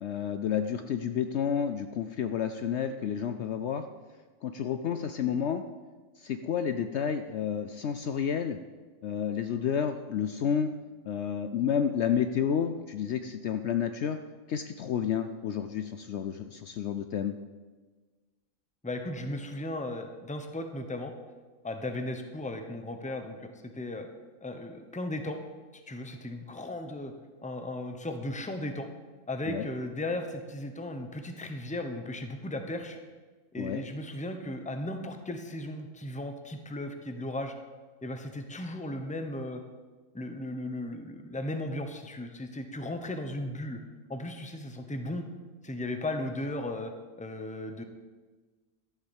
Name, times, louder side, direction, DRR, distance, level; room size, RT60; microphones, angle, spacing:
voice 1, 0.0-3.8 4.4-5.6 6.2-8.6 9.0-10.7 11.0-14.2 14.5-17.3 29.5-29.7 33.6-33.8, left 8 dB, 65° left, 9 dB, 0.8 m, -30 dB
voice 2, 18.8-21.1 21.6-24.1 24.4-25.4 25.9-27.1 27.4-28.9 29.3-33.0 33.5-37.5 38.0-39.6 40.1-43.8 44.1-45.2 45.6-46.9 47.2-47.8, left 1 dB, 5° left, 6 dB, 0.9 m, -36 dB
12.5 x 7.5 x 7.3 m, 1.4 s
omnidirectional pair, 1.4 m